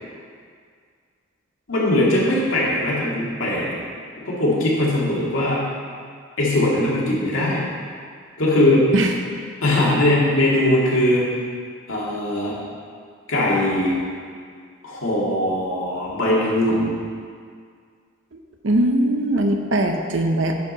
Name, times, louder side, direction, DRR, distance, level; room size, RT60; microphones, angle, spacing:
voice 1, 1.7-3.8 4.2-5.6 6.4-7.6 8.4-8.8 9.6-11.3 11.9-12.5 13.3-14.0 14.8-16.9, left 1 dB, 75° left, -6 dB, 2.2 m, -20 dB
voice 2, 18.6-20.5, right 1 dB, 65° right, 4 dB, 0.8 m, -20 dB
9.4 x 4.7 x 5.4 m, 2.1 s
head